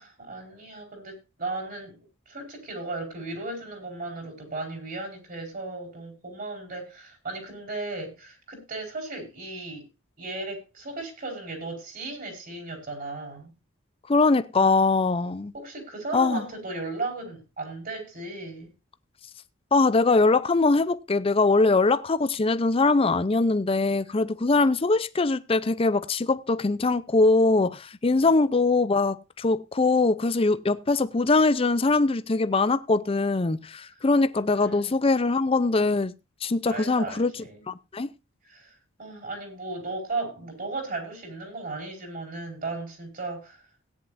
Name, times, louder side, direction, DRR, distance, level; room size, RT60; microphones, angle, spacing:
voice 1, 0.0-2.0 2.3-9.9 10.2-13.5 15.5-18.7 28.1-28.3 34.4-34.9 36.7-37.6 38.4-43.6, right 3 dB, 45° right, 4.7 m, -36 dB
voice 2, 14.1-15.5 16.1-16.4 19.7-36.1 36.4-38.1, left 3 dB, 30° left, 0.5 m, -22 dB
17.0 x 10.0 x 2.6 m
head